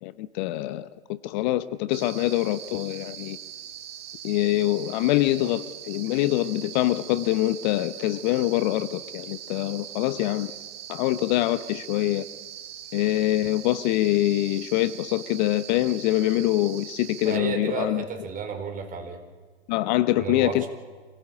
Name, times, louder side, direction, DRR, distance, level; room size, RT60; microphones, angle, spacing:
voice 1, 0.0-3.4 4.2-10.5 10.9-12.3 12.9-18.0 19.7-20.7, left 16 dB, 45° left, 1.0 m, -24 dB
sound 1, 1.9-17.4, right 10 dB, 65° right, 1.6 m, -41 dB
voice 2, 17.2-19.2 20.2-20.7, right 6 dB, 25° right, 4.4 m, -32 dB
26.0 x 18.0 x 8.7 m
hypercardioid pair, 110°, 33 cm